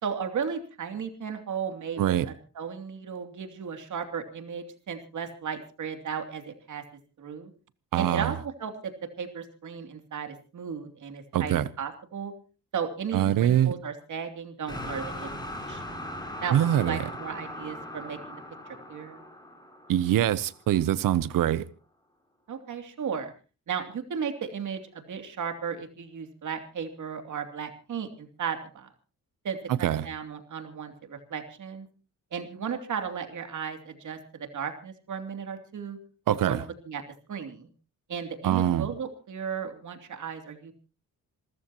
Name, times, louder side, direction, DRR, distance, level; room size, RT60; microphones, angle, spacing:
voice 1, 0.0-6.8 7.2-7.5 7.9-8.9 9.2-12.3 12.7-15.3 15.7-15.8 16.4-18.4 18.7-19.2 22.5-23.3 23.7-28.9 29.4-31.9 32.3-36.0 36.4-37.0 37.3-37.7 38.1-40.7, right 7 dB, 65° right, 2.9 m, -35 dB
voice 2, 2.0-2.3 7.9-8.3 11.3-11.7 13.1-13.7 16.5-17.0 19.9-21.6 29.7-30.0 36.3-36.6 38.4-38.9, right 11 dB, 85° right, 0.8 m, -24 dB
sound 1, 14.7-20.7, left 1 dB, 15° left, 4.8 m, -39 dB
28.0 x 14.0 x 3.0 m
cardioid pair, 110°, 32 cm